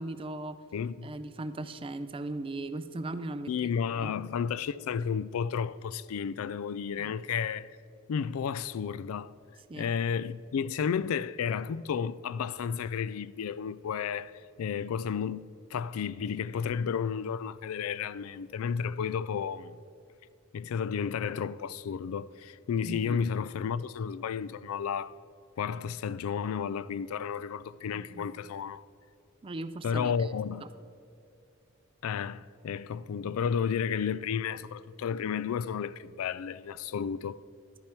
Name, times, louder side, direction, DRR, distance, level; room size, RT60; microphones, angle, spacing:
voice 1, 0.0-0.6 1.0-3.5 4.0-4.1 7.0-7.1 9.7-9.9 22.8-23.2 27.9-28.3 29.4-30.3 30.6-30.7, right 2 dB, 25° right, 0.4 m, -38 dB
voice 2, 0.7-1.1 3.5-7.7 8.1-9.3 9.7-19.8 20.5-25.1 25.6-28.8 29.8-30.7 32.0-37.4, left 7 dB, 85° left, 0.3 m, -32 dB
11.5 x 8.7 x 4.5 m
head